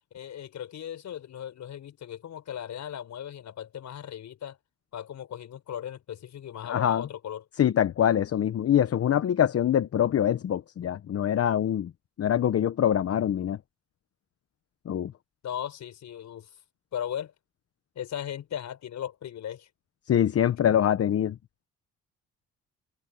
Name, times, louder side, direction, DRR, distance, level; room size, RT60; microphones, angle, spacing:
voice 1, 0.1-4.6 4.9-7.4 15.4-16.5 16.9-17.3 17.9-19.7, left 10 dB, 65° left, 5.9 m, -37 dB
voice 2, 6.7-7.0 7.6-11.9 12.2-13.6 14.9-15.1 20.1-21.4, left 10 dB, 50° left, 0.9 m, -24 dB
cardioid pair, 90°, 30 cm